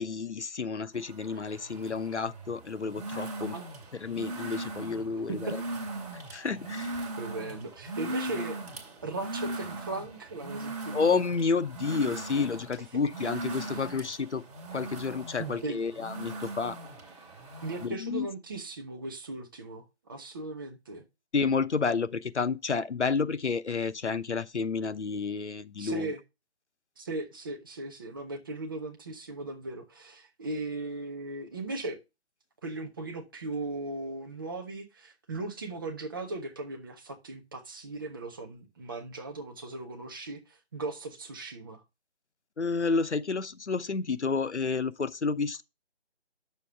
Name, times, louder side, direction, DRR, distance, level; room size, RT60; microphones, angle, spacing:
voice 1, 0.0-3.6 4.0-5.5 6.3-6.9 10.9-14.4 14.7-16.8 17.8-18.3 21.3-26.1 42.6-45.6, left 4 dB, 90° left, 0.9 m, -30 dB
sound 1, 1.0-17.9, right 2 dB, 35° right, 2.5 m, -39 dB
voice 2, 7.2-8.6 9.0-11.1 13.7-13.9 15.4-15.8 17.6-21.0 25.8-26.2 27.0-32.0 32.6-41.8, right 2 dB, 20° right, 1.0 m, -38 dB
10.0 x 6.9 x 3.4 m
figure-of-eight pair, 160°, 34 cm